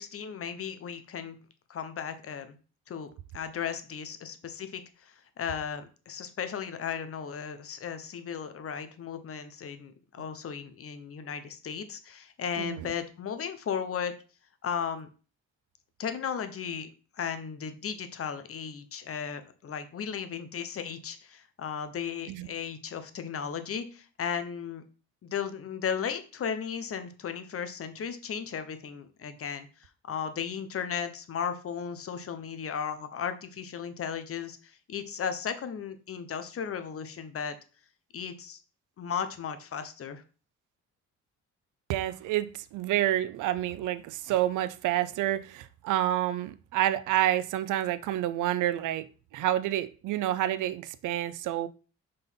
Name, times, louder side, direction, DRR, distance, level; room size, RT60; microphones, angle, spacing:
voice 1, 0.0-1.4 1.7-2.6 2.9-14.1 14.6-15.1 16.0-16.9 17.1-24.8 25.2-37.6 38.1-38.6 39.0-40.2, left 7 dB, 50° left, 10 dB, 1.0 m, -35 dB
voice 2, 12.6-12.9 22.3-22.5 41.9-49.1 49.3-51.7, right 13 dB, 85° right, 14 dB, 0.6 m, -28 dB
5.3 x 3.9 x 5.6 m, 0.36 s
cardioid pair, 90°, 30 cm